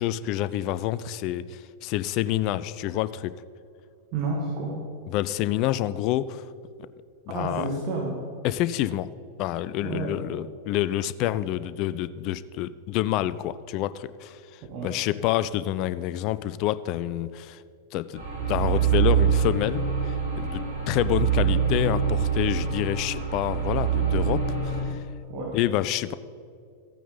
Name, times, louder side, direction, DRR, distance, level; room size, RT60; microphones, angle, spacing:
voice 1, 0.0-3.4 5.1-6.4 7.3-7.7 8.4-9.1 9.4-17.6 17.9-18.2 18.5-25.0 25.5-26.1, left 13 dB, 40° left, 15 dB, 0.4 m, -28 dB
voice 2, 4.1-4.7 7.3-8.1 9.8-10.1 14.7-14.9 25.3-25.5, right 3 dB, 40° right, -3 dB, 2.1 m, -30 dB
sound 1, 18.1-24.8, right 7 dB, 70° right, 3.4 m, -25 dB
14.5 x 9.2 x 4.0 m, 2.4 s
figure-of-eight pair, 90°, 0 cm